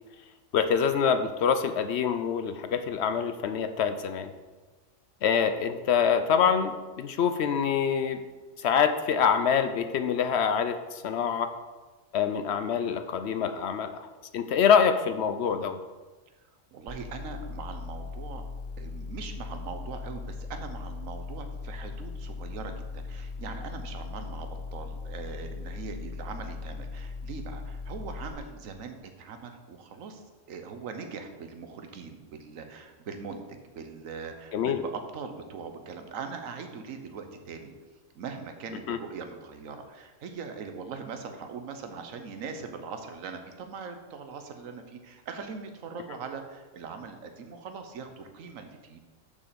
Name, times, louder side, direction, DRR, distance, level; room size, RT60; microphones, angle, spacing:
voice 1, 0.5-4.3 5.2-8.2 8.6-11.5 12.1-14.1 14.3-15.8 34.5-34.8 38.9-39.0, left 7 dB, 65° left, 9 dB, 0.7 m, -25 dB
voice 2, 16.4-18.4 18.8-37.7 38.1-49.0, right 5 dB, 75° right, 6 dB, 1.3 m, -41 dB
sound 1, 16.9-28.3, left 4 dB, 15° left, 0.8 m, -39 dB
6.9 x 5.4 x 6.8 m, 1.3 s
omnidirectional pair, 1.4 m